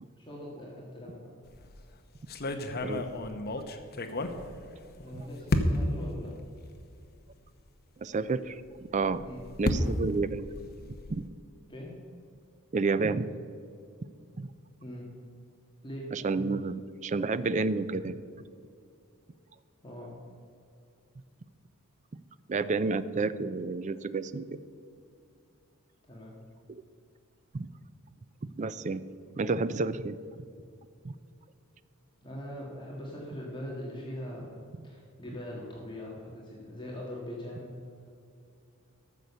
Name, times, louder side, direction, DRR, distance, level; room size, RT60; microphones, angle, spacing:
voice 1, 0.2-1.3 4.9-6.3 9.3-9.4 11.7-11.9 14.8-15.1 15.8-16.1 19.8-20.2 26.1-26.3 32.2-37.7, equal, 20° left, -4 dB, 1.8 m, -41 dB
sound 1, 1.4-1.7 2.3-5.0 5.5-6.0 6.8-6.9 7.2-7.3 8.9-11.3, left 1 dB, 45° left, 0.9 m, -32 dB
voice 2, 8.0-9.2 9.6-10.5 11.1-11.2 12.7-13.3 14.4-14.5 16.1-18.2 22.5-24.6 26.7-26.8 27.5-27.7 28.6-29.1 29.4-30.2 31.0-31.1, right 3 dB, 35° right, 14 dB, 0.4 m, -30 dB
13.0 x 6.6 x 6.9 m, 2.4 s
head